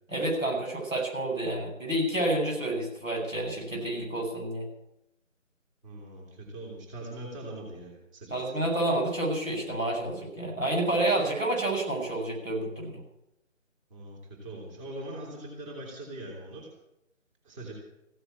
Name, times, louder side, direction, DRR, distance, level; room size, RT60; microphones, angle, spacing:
voice 1, 0.1-4.7 8.3-13.0, right 1 dB, 80° right, -1 dB, 7.9 m, -29 dB
voice 2, 5.8-8.5 13.9-16.7 17.4-17.7, right 1 dB, 25° right, -1 dB, 3.1 m, -41 dB
15.5 x 9.9 x 8.7 m, 0.85 s
figure-of-eight pair, 155°, 39 cm